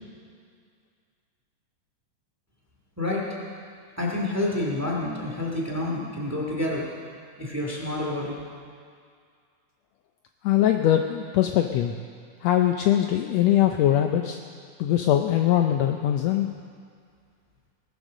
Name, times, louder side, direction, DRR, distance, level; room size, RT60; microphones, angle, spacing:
voice 1, 3.0-3.3 4.0-6.9 7.4-8.4, left 1 dB, 5° right, -3 dB, 1.8 m, -28 dB
voice 2, 10.4-11.9 12.4-14.4 14.8-16.5, left 11 dB, 75° left, 5 dB, 1.6 m, -22 dB
18.5 x 8.1 x 6.4 m, 2.1 s
omnidirectional pair, 3.4 m